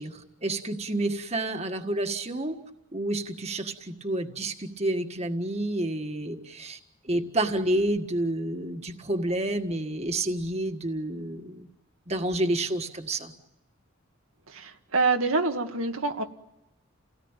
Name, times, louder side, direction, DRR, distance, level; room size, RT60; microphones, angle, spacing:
voice 1, 0.0-2.5 2.9-6.8 7.0-11.7 12.1-13.3, right 1 dB, 30° right, 5 dB, 1.6 m, -29 dB
voice 2, 14.5-16.2, right 3 dB, 90° right, 4 dB, 1.9 m, -26 dB
30.0 x 18.0 x 9.0 m, 0.91 s
head